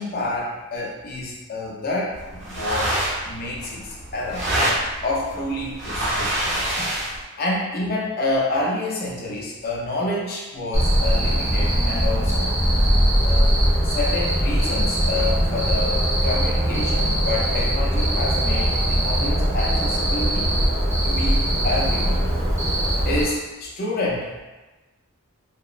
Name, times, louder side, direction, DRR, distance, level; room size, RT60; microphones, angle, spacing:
voice 1, 0.0-3.0 3.3-4.5 5.0-6.9 7.4-12.6 13.2-20.5 21.0-22.3 23.1-24.4, left 2 dB, 45° left, -3 dB, 0.5 m, -28 dB
sound 1, 2.1-7.2, right 1 dB, 55° right, 0.7 m, -26 dB
Cricket, 10.7-23.2, equal, 15° right, 0.5 m, -21 dB
2.8 x 2.1 x 2.4 m, 1.2 s
head